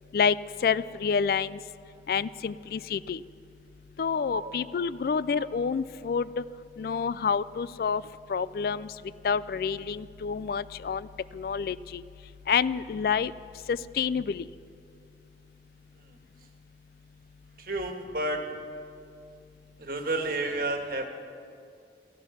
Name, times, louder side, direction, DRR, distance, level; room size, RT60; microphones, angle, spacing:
voice 1, 0.6-1.6 2.1-3.2 4.0-6.4 6.8-8.0 8.3-8.9 9.2-11.1 11.3-12.0 12.5-13.3 13.7-14.4, left 6 dB, 55° left, 18 dB, 0.3 m, -28 dB
voice 2, 17.6-18.4 19.8-21.0, right 2 dB, 55° right, 4 dB, 1.6 m, -30 dB
16.0 x 15.0 x 5.8 m, 2.4 s
head